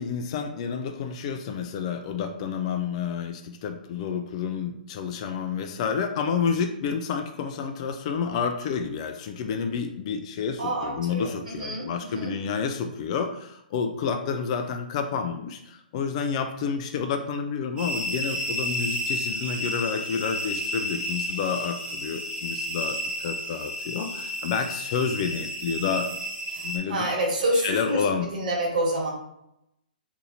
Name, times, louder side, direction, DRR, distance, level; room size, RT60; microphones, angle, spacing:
voice 1, 0.0-26.1 26.6-27.1 27.6-28.3, left 6 dB, 40° left, 7 dB, 0.4 m, -29 dB
voice 2, 10.6-12.3 26.5-29.1, right 1 dB, 60° right, -2 dB, 1.3 m, -28 dB
sound 1, 17.8-26.8, equal, 15° right, 0.7 m, -32 dB
2.8 x 2.7 x 3.8 m, 0.81 s
hypercardioid pair, 130°, 5 cm